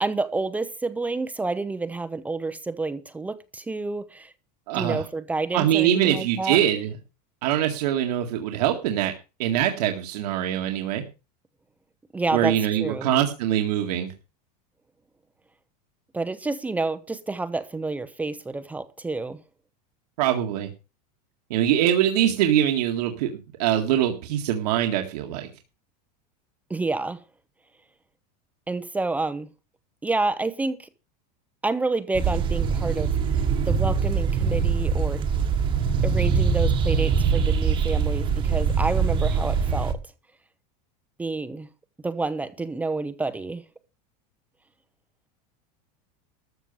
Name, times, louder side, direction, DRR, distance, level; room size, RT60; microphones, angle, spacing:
voice 1, 0.0-4.3 4.7-6.6 12.1-13.1 16.1-19.4 26.7-27.2 28.7-29.5 30.0-30.9 31.6-33.1 33.6-35.2 36.0-40.0 41.2-41.7 42.0-43.6, right 3 dB, 5° right, 0.7 m, -29 dB
voice 2, 4.7-5.0 5.5-6.9 7.4-9.1 9.4-11.0 12.3-14.1 20.2-20.7 21.5-25.5, right 11 dB, 70° right, 2.0 m, -23 dB
sound 1, 32.1-39.9, right 6 dB, 25° right, 1.3 m, -23 dB
13.5 x 6.4 x 6.9 m
supercardioid pair, 165°, 21 cm